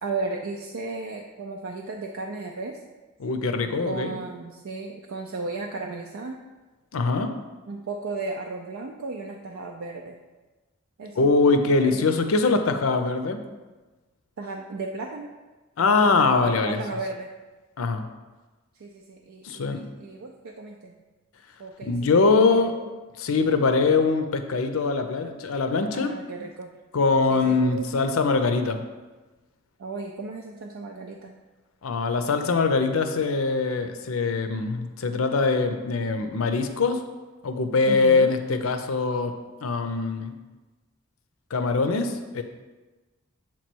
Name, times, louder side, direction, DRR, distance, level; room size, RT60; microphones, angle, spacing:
voice 1, 0.0-2.8 3.8-6.4 7.7-10.2 11.0-11.3 11.6-12.1 14.4-15.3 15.8-17.3 18.7-21.0 21.6-21.9 22.4-23.0 24.2-24.5 25.9-26.7 27.3-28.2 29.8-31.3 37.9-38.3, right 3 dB, 75° right, 1 dB, 0.4 m, -35 dB
voice 2, 3.2-4.1 6.9-7.3 11.2-13.4 15.8-16.8 17.8-18.1 19.4-19.8 21.8-22.7 23.2-26.2 26.9-28.8 31.8-37.0 37.4-39.3 39.6-40.3 41.5-42.4, left 4 dB, 85° left, 7 dB, 0.5 m, -22 dB
7.3 x 3.1 x 4.4 m, 1.2 s
head